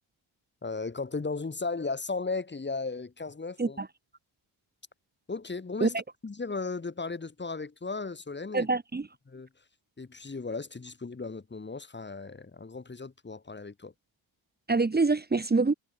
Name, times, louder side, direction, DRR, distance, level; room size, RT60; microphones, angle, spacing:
voice 1, 0.6-3.8 5.3-8.7 9.3-9.5 10.0-13.9, left 4 dB, 20° left, 4.6 m, -36 dB
voice 2, 8.5-9.1 14.7-15.7, right 3 dB, 20° right, 3.0 m, -25 dB
cardioid pair, 135°, 50 cm